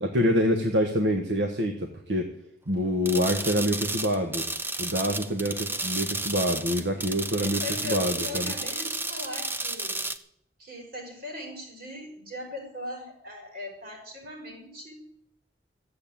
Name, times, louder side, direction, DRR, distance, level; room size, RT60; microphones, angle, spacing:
voice 1, 0.0-2.3 2.7-4.4 4.8-8.5, equal, 75° right, 3 dB, 1.4 m, -26 dB
sound 1, 3.1-10.2, right 2 dB, 10° right, 0.7 m, -32 dB
voice 2, 7.4-10.0 10.6-15.0, left 1 dB, 55° right, 0 dB, 6.1 m, -39 dB
14.5 x 7.8 x 8.9 m, 0.73 s
head